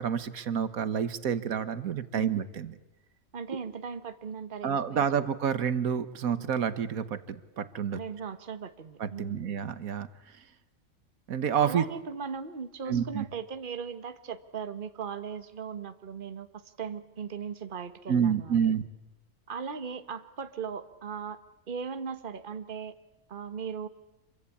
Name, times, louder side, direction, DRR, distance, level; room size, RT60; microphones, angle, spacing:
voice 1, 0.0-2.7 4.6-8.0 9.0-10.1 11.3-11.8 12.9-13.3 18.1-18.8, right 7 dB, 90° right, 13 dB, 1.6 m, -29 dB
voice 2, 3.3-5.3 7.9-9.6 11.6-18.7 19.5-21.4 21.7-23.0 23.3-23.9, right 6 dB, 40° right, 10 dB, 1.4 m, -38 dB
27.0 x 23.0 x 8.5 m, 1.0 s
omnidirectional pair, 1.4 m